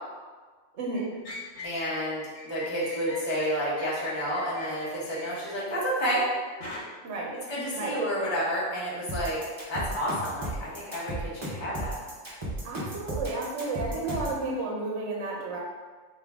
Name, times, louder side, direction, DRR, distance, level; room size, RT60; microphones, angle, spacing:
voice 1, 0.8-1.1 7.0-7.3 7.7-8.0 12.6-15.6, right 3 dB, 65° right, -2 dB, 0.9 m, -32 dB
sound 1, 0.9-1.9 2.2-5.7 6.6-6.8, left 1 dB, 75° left, 1.2 m, -42 dB
voice 2, 1.6-6.2 7.5-9.4 9.7-12.0, equal, 25° left, -7 dB, 0.9 m, -30 dB
sound 2, 9.1-14.4, right 1 dB, 30° right, 0.6 m, -34 dB
3.6 x 2.6 x 3.4 m, 1.4 s
omnidirectional pair, 1.3 m